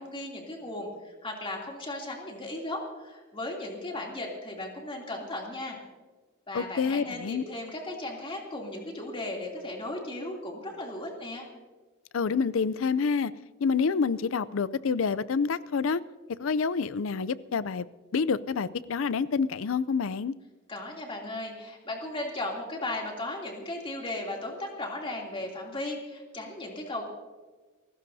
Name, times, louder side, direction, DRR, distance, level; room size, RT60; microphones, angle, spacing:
voice 1, 0.0-5.8 6.5-11.5 20.7-27.1, left 2 dB, 25° left, -1 dB, 2.9 m, -36 dB
voice 2, 6.5-7.4 12.1-13.3 13.6-16.0 16.4-17.9 18.1-20.3, left 5 dB, 70° left, 17 dB, 0.5 m, -27 dB
29.0 x 15.0 x 2.7 m, 1.3 s
head